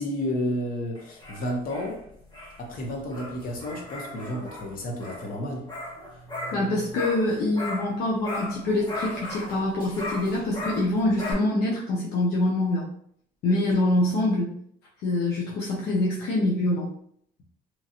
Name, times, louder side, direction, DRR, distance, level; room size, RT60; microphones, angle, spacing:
voice 1, 0.0-2.0 2.6-5.7, left 1 dB, 55° left, 1 dB, 0.9 m, -31 dB
sound 1, 0.9-11.3, left 1 dB, 25° left, 0.9 m, -37 dB
voice 2, 6.5-12.9 13.4-14.5 15.0-16.9, left 1 dB, 75° left, -4 dB, 0.7 m, -25 dB
3.0 x 2.4 x 2.8 m, 0.67 s
cardioid pair, 110°, 17 cm